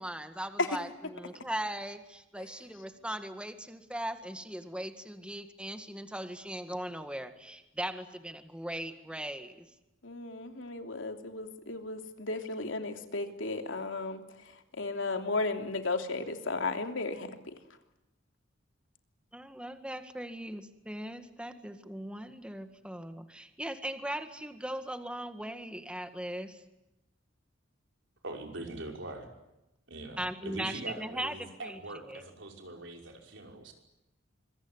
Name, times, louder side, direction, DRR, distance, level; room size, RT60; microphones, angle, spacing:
voice 1, 0.0-9.7 19.3-26.6 30.2-32.2, right 1 dB, 5° right, 8 dB, 1.9 m, -39 dB
voice 2, 10.0-14.2 14.7-17.3, left 3 dB, 80° left, 5 dB, 3.1 m, -34 dB
voice 3, 28.2-29.3 29.9-33.7, right 2 dB, 70° right, 2 dB, 5.7 m, -42 dB
26.0 x 23.5 x 9.7 m, 0.93 s
head